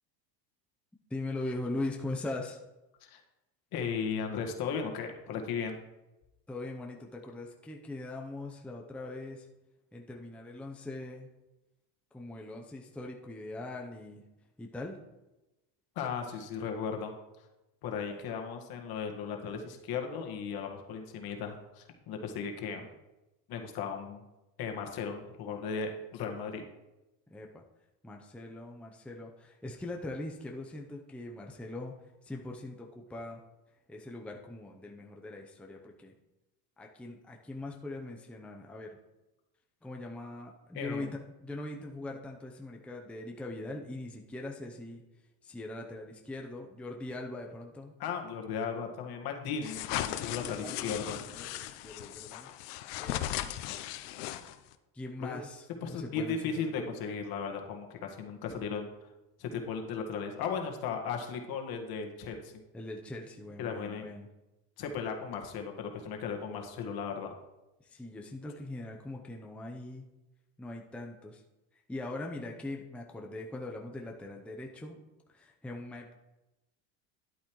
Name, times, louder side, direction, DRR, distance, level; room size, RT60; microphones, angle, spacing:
voice 1, 1.1-2.6 6.5-9.5 9.9-11.3 12.1-14.2 14.6-15.0 18.0-18.2 22.8-22.9 26.4-26.5 27.3-27.6 28.0-33.4 33.9-36.1 36.8-39.0 39.8-45.0 45.4-47.9 50.6-52.5 53.0-53.5 54.9-57.1 58.5-58.7 62.7-64.3 67.8-70.0 70.6-71.4 71.7-75.0 75.3-76.1, left 2 dB, 5° left, 1 dB, 0.7 m, -41 dB
voice 2, 3.7-5.8 16.0-17.1 17.8-22.9 23.5-24.2 24.6-26.6 40.7-41.1 48.0-51.2 55.2-55.4 55.8-58.9 59.4-62.5 63.6-64.1 64.8-67.3, left 6 dB, 55° left, 3 dB, 1.8 m, -36 dB
sound 1, 49.6-54.7, left 13 dB, 85° left, 0.8 m, -37 dB
11.0 x 8.3 x 3.2 m, 1.0 s
supercardioid pair, 120°, 45 cm